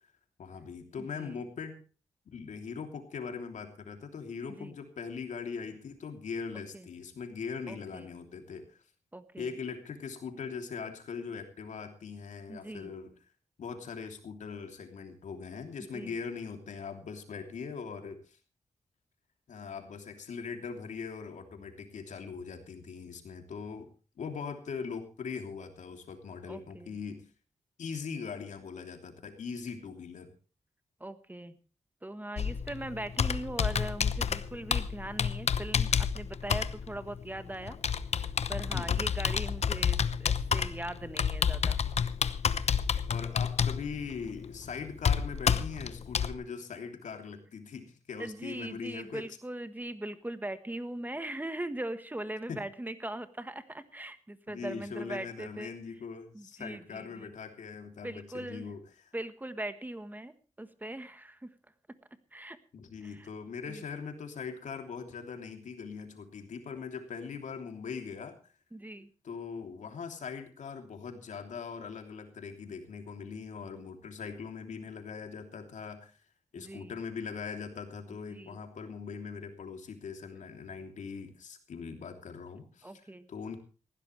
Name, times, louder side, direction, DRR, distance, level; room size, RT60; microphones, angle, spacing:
voice 1, 0.4-1.8 2.3-8.8 9.4-13.1 13.6-18.4 19.5-23.9 24.2-27.2 27.8-30.3 38.7-39.1 43.1-49.2 52.5-52.6 54.5-59.1 62.7-68.4 69.2-76.2 76.5-82.9 83.3-83.6, left 5 dB, 80° left, 5 dB, 3.1 m, -41 dB
voice 2, 1.0-1.4 4.5-4.8 6.7-6.9 7.7-8.1 9.1-9.5 12.5-12.9 15.8-16.1 26.4-27.0 31.0-31.6 32.0-37.8 38.5-41.8 48.2-55.7 56.3-57.3 58.0-58.7 59.1-61.5 62.3-62.6 63.0-63.3 63.7-63.8 68.7-69.1 76.6-77.0 78.3-78.6 82.8-83.3, right 1 dB, 15° right, 11 dB, 1.3 m, -40 dB
Computer keyboard, 32.4-46.3, left 7 dB, 60° left, 0.9 m, -30 dB
19.0 x 16.0 x 3.3 m, 0.36 s
wide cardioid pair, 100°, 12 cm